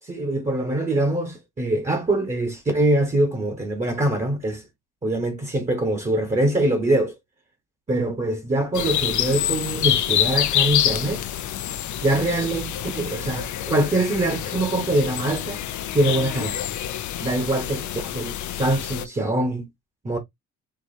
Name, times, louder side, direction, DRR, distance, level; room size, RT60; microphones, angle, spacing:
voice 1, 0.0-4.6 5.0-7.1 7.9-11.2 12.0-15.6 15.9-16.6 17.2-19.7 20.0-20.2, right 1 dB, 25° right, 1.4 m, -23 dB
sound 1, 8.7-19.1, left 11 dB, 70° left, 0.7 m, -27 dB
4.8 x 2.8 x 2.7 m
cardioid pair, 90°, 30 cm